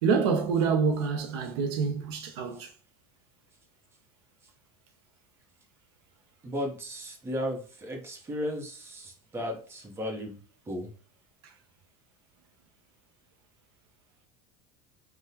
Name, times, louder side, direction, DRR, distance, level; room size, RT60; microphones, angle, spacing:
voice 1, 0.0-2.7, right 5 dB, 80° right, 0.5 m, -26 dB
voice 2, 6.4-10.4 10.7-10.9, equal, 15° right, 0.8 m, -35 dB
3.5 x 2.2 x 2.8 m
supercardioid pair, 125°, 14 cm